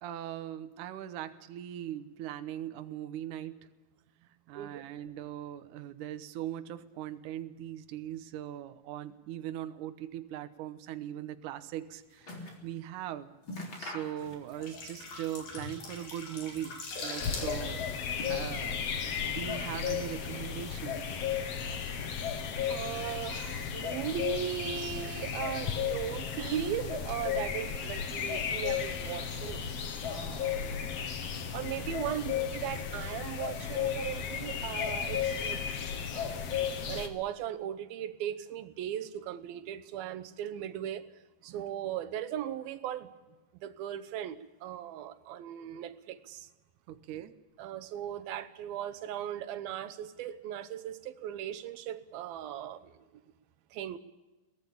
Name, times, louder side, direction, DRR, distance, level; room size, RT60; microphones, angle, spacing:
voice 1, 0.0-3.7 4.5-13.4 13.8-18.0 18.3-21.2 29.8-29.9 46.9-47.3, right 11 dB, 70° right, 9 dB, 2.3 m, -40 dB
sound 1, 11.5-12.7 13.0-13.1 13.4-14.7 15.0-15.9 16.3-17.2 17.8-18.8 19.3-20.0 20.3-21.1 21.7-21.8, left 2 dB, 35° left, 4.3 m, -46 dB
sound 2, 14.4-19.2 19.5-19.7, left 4 dB, 75° left, 6.1 m, -41 dB
sound 3, 17.2-37.1, left 7 dB, 55° left, 2.3 m, -34 dB
voice 2, 22.7-29.6 30.0-30.8 31.5-35.6 36.1-36.5 36.9-41.0 41.4-43.1 43.6-46.5 47.6-53.1 53.7-54.0, right 10 dB, 85° right, 12 dB, 2.9 m, -38 dB
22.5 x 18.0 x 8.5 m, 1.1 s
omnidirectional pair, 4.2 m